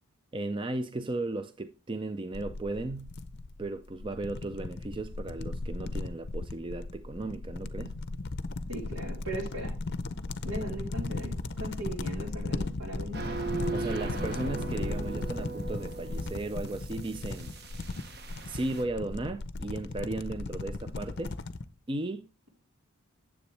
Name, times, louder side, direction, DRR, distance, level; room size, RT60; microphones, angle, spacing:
voice 1, 0.3-3.2 3.6-8.0 13.7-17.5 18.5-21.3 21.9-22.3, right 2 dB, 25° right, 0.4 m, -35 dB
sound 1, 2.3-21.7, left 2 dB, 50° left, 0.6 m, -37 dB
voice 2, 8.7-9.7 10.4-13.3, right 1 dB, 80° right, 3.9 m, -38 dB
sound 2, 13.1-18.8, right 3 dB, 50° right, 1.1 m, -38 dB
9.7 x 7.7 x 3.3 m
head